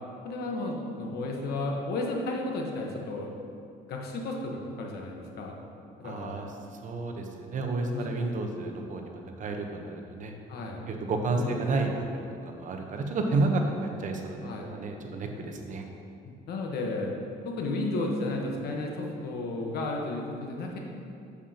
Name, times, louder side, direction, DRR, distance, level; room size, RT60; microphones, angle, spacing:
voice 1, 0.2-3.3 3.9-5.5 6.0-6.4 7.9-8.1 10.5-10.8 11.3-11.6 14.4-14.7 16.2-17.1 17.4-20.8, left 2 dB, 70° left, 0 dB, 1.2 m, -33 dB
voice 2, 6.0-6.5 6.8-10.3 10.9-13.6 14.0-15.8, right 3 dB, 50° right, 3 dB, 0.9 m, -31 dB
8.1 x 7.2 x 2.9 m, 2.5 s
cardioid pair, 110°, 17 cm